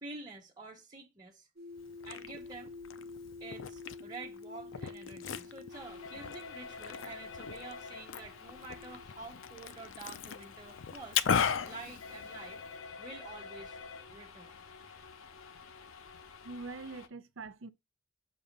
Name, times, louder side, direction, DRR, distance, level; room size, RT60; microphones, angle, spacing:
voice 1, 0.0-1.5 2.1-2.7 3.4-11.2 11.6-12.6 13.0-13.8 14.1-14.6, right 3 dB, 20° right, 1.1 m, -48 dB
sound 1, 1.6-9.0, left 3 dB, 50° right, 1.0 m, -49 dB
Liquid, 1.8-12.8, left 7 dB, 70° left, 0.5 m, -38 dB
sound 2, 5.7-17.1, left 5 dB, 85° left, 0.8 m, -49 dB
voice 2, 16.4-17.7, right 3 dB, 75° right, 0.6 m, -43 dB
7.0 x 2.7 x 5.3 m
head